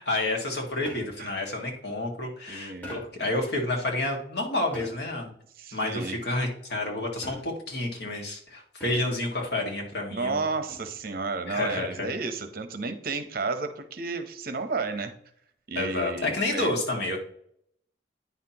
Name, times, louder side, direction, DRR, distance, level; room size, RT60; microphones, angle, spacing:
voice 1, 0.0-5.3 5.7-10.4 11.5-12.1 15.8-17.2, left 2 dB, 65° left, 0 dB, 1.9 m, -29 dB
sound 1, 0.8-1.4 2.8-3.3 4.7-5.2 7.2-7.8 8.8-9.3 10.7-11.1, equal, 10° left, 2.4 m, -44 dB
voice 2, 2.5-2.9 5.6-6.2 10.1-15.1 15.7-16.7, right 4 dB, 55° right, 9 dB, 0.9 m, -32 dB
9.4 x 5.8 x 2.9 m, 0.65 s
head